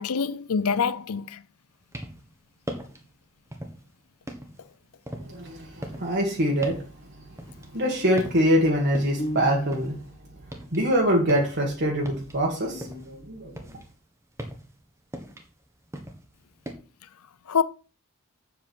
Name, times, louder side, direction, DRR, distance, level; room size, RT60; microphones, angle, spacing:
voice 1, 0.0-1.4 17.5-17.6, left 6 dB, 80° left, 0.6 m, -25 dB
sound 1, 1.7-2.3 2.6-3.1 3.5-3.9 4.3-7.9 8.2-8.6 8.9-10.8 11.1-13.2 13.5-16.7, equal, 15° right, 1.4 m, -40 dB
voice 2, 5.3-6.8 7.7-10.0 10.7-13.5, equal, 50° right, 1.9 m, -24 dB
sound 2, 9.2-10.2, equal, 35° left, 1.4 m, -34 dB
7.9 x 7.6 x 4.6 m
head